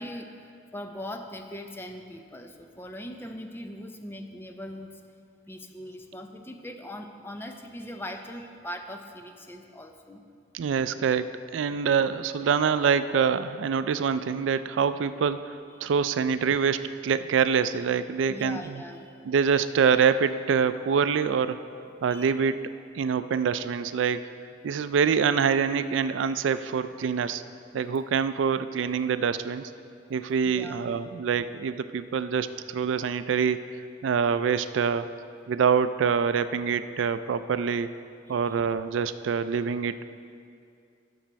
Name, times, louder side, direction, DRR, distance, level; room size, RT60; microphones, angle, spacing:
voice 1, 0.0-5.0 5.5-10.2 11.6-11.7 15.8-16.1 18.3-19.2 22.1-22.3 30.4-30.8 38.3-38.6, left 1 dB, 10° left, 5 dB, 0.5 m, -40 dB
voice 2, 10.5-18.8 19.3-21.6 22.0-22.6 23.0-24.2 24.6-27.4 27.7-29.7 30.1-35.1 35.5-37.9 38.3-40.0, right 6 dB, 80° right, 12 dB, 0.3 m, -25 dB
11.5 x 6.1 x 4.6 m, 2.4 s
head